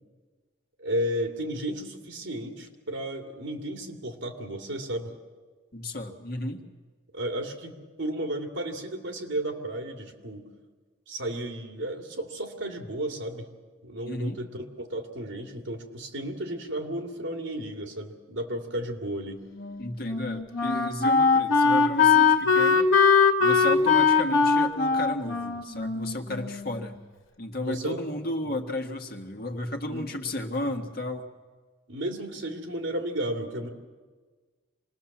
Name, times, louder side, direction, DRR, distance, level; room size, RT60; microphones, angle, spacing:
voice 1, 0.8-5.1 7.1-10.5 11.1-13.5 13.8-19.4 27.6-28.0 29.9-30.1 31.9-33.7, right 1 dB, 75° right, 5 dB, 2.7 m, -33 dB
voice 2, 5.7-6.6 14.1-14.4 19.8-22.9 23.4-27.0 27.4-31.3, left 1 dB, 50° left, 4 dB, 1.8 m, -33 dB
Wind instrument woodwind instrument, 19.6-26.9, left 5 dB, 85° left, 1.6 m, -21 dB
26.0 x 19.5 x 7.3 m, 1.4 s
head